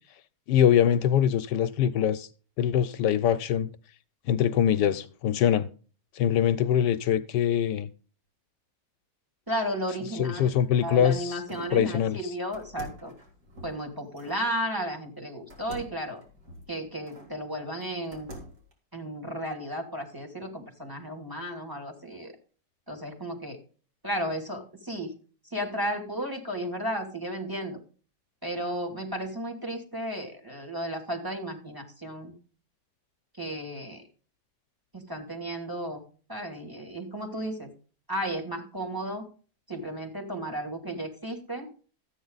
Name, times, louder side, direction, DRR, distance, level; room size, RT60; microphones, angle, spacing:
voice 1, 0.5-2.3 2.6-3.7 4.3-5.7 6.1-7.9 10.1-12.2, left 9 dB, 75° left, 1.3 m, -23 dB
voice 2, 9.5-10.5 10.8-13.1 13.6-16.2 16.7-18.3 18.9-22.3 22.9-23.6 24.0-25.1 25.4-27.8 28.4-32.3 33.4-34.0 34.9-36.0 36.3-37.7 38.1-39.3 39.7-41.7, equal, 10° right, 2.6 m, -34 dB
sound 1, 10.5-11.8 12.5-14.4 15.5-17.3 17.8-18.7, equal, 65° right, 4.0 m, -46 dB
13.5 x 9.1 x 3.9 m
omnidirectional pair, 1.9 m